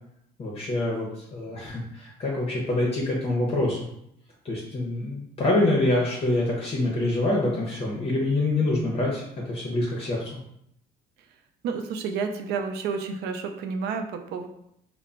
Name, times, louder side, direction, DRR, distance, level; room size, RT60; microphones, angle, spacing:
voice 1, 0.4-3.9 4.4-10.2, left 2 dB, 35° left, -3 dB, 0.6 m, -26 dB
voice 2, 11.6-14.5, right 5 dB, 75° right, 6 dB, 0.4 m, -30 dB
2.1 x 2.0 x 3.7 m, 0.75 s
cardioid pair, 110°, 17 cm